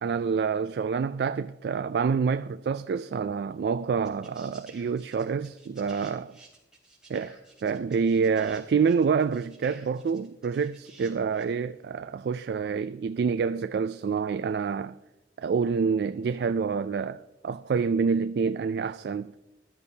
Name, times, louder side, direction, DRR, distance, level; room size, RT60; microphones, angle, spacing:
voice 1, 0.0-6.4 7.1-15.0 15.4-19.3, right 5 dB, 60° right, 0.3 m, -27 dB
sound 1, 3.5-3.6 4.0-11.5 12.8-12.9, right 3 dB, 5° right, 3.6 m, -53 dB
20.0 x 12.5 x 2.8 m
head